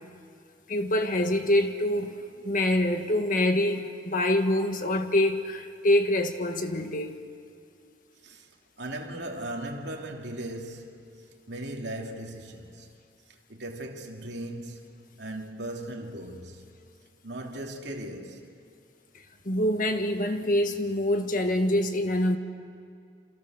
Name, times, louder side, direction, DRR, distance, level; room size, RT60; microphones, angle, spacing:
voice 1, 0.7-2.2 2.4-7.2 19.4-22.4, left 1 dB, 45° left, 1.6 m, -25 dB
voice 2, 8.8-12.9 13.3-16.7 17.2-18.5, right 1 dB, 65° right, 3.1 m, -38 dB
28.0 x 27.5 x 6.6 m
head